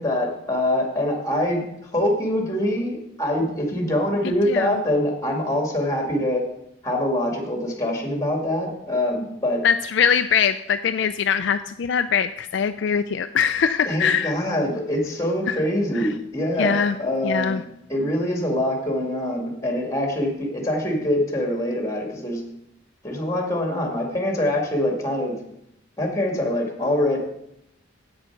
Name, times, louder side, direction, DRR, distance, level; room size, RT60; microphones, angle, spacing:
voice 1, 0.0-6.4 6.8-9.6 13.9-17.6 17.9-22.5 23.0-25.4 26.0-27.2, left 1 dB, 15° left, 1 dB, 2.0 m, -24 dB
voice 2, 4.2-4.7 9.6-14.3 15.5-15.6 15.9-16.1 16.6-17.0 17.2-17.6, left 7 dB, 55° left, 9 dB, 0.4 m, -22 dB
8.6 x 6.8 x 5.9 m, 0.79 s
head